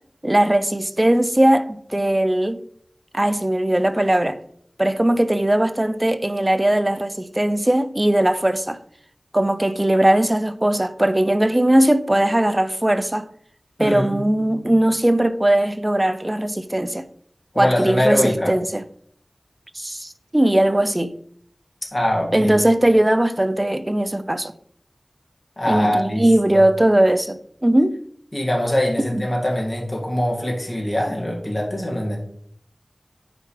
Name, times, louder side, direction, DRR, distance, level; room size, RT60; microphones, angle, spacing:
voice 1, 0.2-2.6 3.1-4.4 4.8-8.8 9.3-13.3 13.8-17.0 17.6-18.8 19.7-21.1 22.3-24.5 25.7-28.0 29.1-29.2, right 1 dB, 25° right, 0.5 m, -19 dB
voice 2, 13.8-14.7 17.5-18.5 21.9-22.6 25.6-26.2 26.5-26.6 28.3-32.2, left 1 dB, 40° left, 2.0 m, -23 dB
8.8 x 4.5 x 3.3 m
wide cardioid pair, 60°, 0 cm